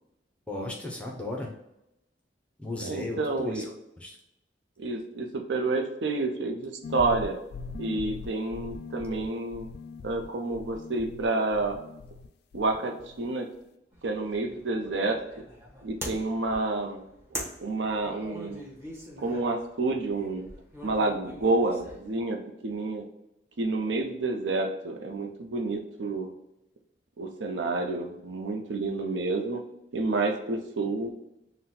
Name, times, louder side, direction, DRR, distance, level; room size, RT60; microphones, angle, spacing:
voice 1, 0.5-1.5 2.6-4.2, left 2 dB, 5° left, 1 dB, 0.6 m, -36 dB
voice 2, 2.8-3.7 4.8-7.4 7.8-9.7 10.0-11.7 12.5-13.5 14.0-15.2 15.8-17.0 17.3-18.6 19.2-20.5 20.8-23.0 23.6-26.3 27.2-29.6 29.9-31.1, right 3 dB, 75° right, 4 dB, 0.5 m, -29 dB
sound 1, 6.8-12.3 12.5-13.3, left 4 dB, 60° left, 0.3 m, -41 dB
sound 2, 13.9-22.2, equal, 15° right, 1.0 m, -43 dB
3.9 x 2.1 x 4.1 m, 0.84 s
head